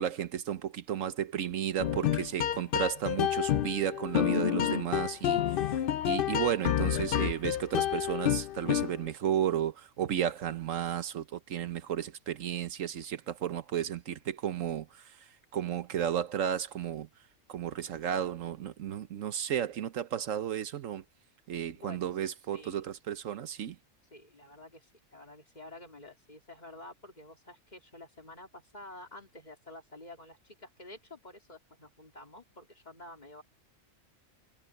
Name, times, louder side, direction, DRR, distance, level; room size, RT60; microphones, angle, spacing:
voice 1, 0.0-5.8 6.1-15.2 15.5-17.1 17.5-21.0 21.5-23.8, right 9 dB, 75° right, 1.2 m, -33 dB
sound 1, 1.8-9.1, left 10 dB, 65° left, 0.5 m, -29 dB
voice 2, 21.7-22.1 22.5-22.7 24.1-33.4, left 2 dB, 30° left, 3.4 m, -50 dB
omnidirectional pair, 1.4 m